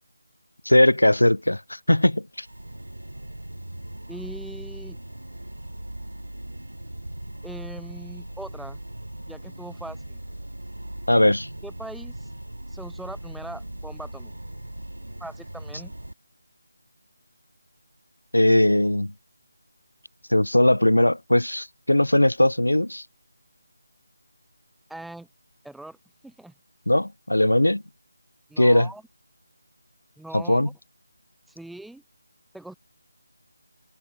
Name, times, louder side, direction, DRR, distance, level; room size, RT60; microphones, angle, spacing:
voice 1, 0.6-2.5 11.1-11.5 18.3-19.1 20.3-23.0 26.9-27.8 28.6-28.9 30.3-30.7, left 1 dB, 85° left, 1.2 m, -19 dB
sound 1, 2.4-16.1, right 1 dB, 85° right, 6.3 m, -39 dB
voice 2, 4.1-5.0 7.4-8.8 9.3-10.2 11.6-12.3 12.7-14.3 15.2-15.9 24.9-25.3 25.6-26.0 26.2-26.5 28.5-29.0 30.2-30.6 31.5-32.0 32.5-32.7, right 2 dB, ahead, 3.2 m, -40 dB
figure-of-eight pair, 160°, 0 cm